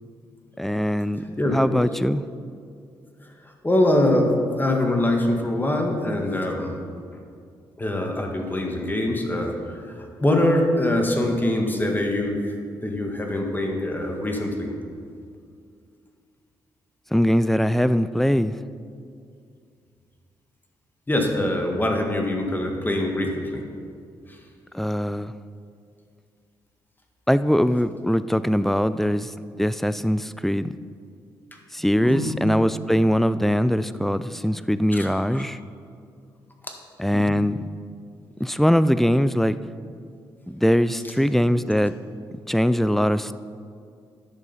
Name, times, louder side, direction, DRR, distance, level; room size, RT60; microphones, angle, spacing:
voice 1, 0.6-1.2 1.5-2.2 17.1-18.5 24.7-25.3 27.3-30.7 31.7-35.6 37.0-37.6 38.4-39.6 40.5-41.9 42.5-43.4, equal, 5° left, 14 dB, 0.4 m, -21 dB
voice 2, 1.4-1.8 3.6-6.8 7.8-12.5 12.8-14.7 21.1-23.6 32.0-32.4 34.9-35.1 35.3-35.4 36.6-36.7 37.1-37.4, left 1 dB, 20° left, 2 dB, 1.8 m, -24 dB
11.0 x 6.6 x 5.5 m, 2.3 s
supercardioid pair, 60°, 9 cm